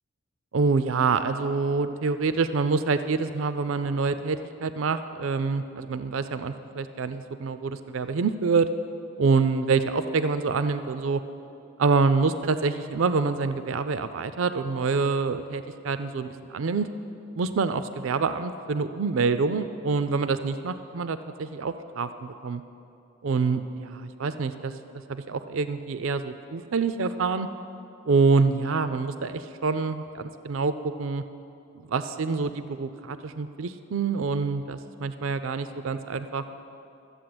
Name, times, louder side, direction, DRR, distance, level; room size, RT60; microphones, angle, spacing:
voice 1, 0.5-8.7 9.2-11.2 11.8-16.9 17.4-22.6 23.2-24.7 25.1-27.5 28.1-31.2 31.9-36.5, right 4 dB, 75° right, 11 dB, 0.4 m, -26 dB
13.0 x 8.1 x 7.8 m, 2.8 s
head